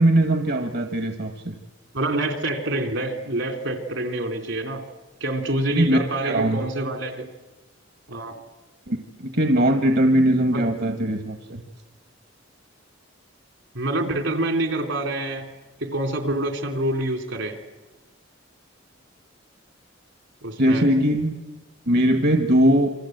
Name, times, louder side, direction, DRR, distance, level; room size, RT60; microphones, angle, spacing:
voice 1, 0.0-1.5 5.7-6.6 8.9-11.6 20.6-21.4 21.9-22.9, right 1 dB, 55° right, 6 dB, 1.5 m, -20 dB
voice 2, 1.9-4.8 5.2-7.3 8.1-8.4 10.5-10.6 13.7-15.5 15.8-17.6 20.4-20.9, right 1 dB, 75° right, 6 dB, 3.3 m, -26 dB
27.5 x 25.0 x 8.0 m, 1.2 s
head